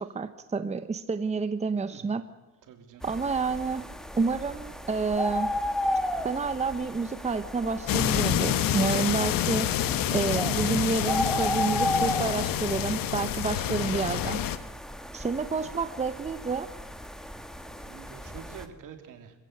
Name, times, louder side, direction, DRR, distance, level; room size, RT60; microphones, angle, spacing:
voice 1, 0.0-2.2 3.0-3.8 4.2-5.5 6.2-9.7 10.1-14.4 15.1-16.7, right 4 dB, 20° right, 10 dB, 0.9 m, -29 dB
voice 2, 2.7-3.0 15.6-15.8 17.8-19.3, right 8 dB, 70° right, 6 dB, 3.0 m, -46 dB
sound 1, 3.0-18.6, left 1 dB, ahead, 1.5 m, -34 dB
sound 2, 7.9-14.6, left 11 dB, 90° left, 1.2 m, -28 dB
25.5 x 15.5 x 8.1 m, 1.2 s
cardioid pair, 130°, 33 cm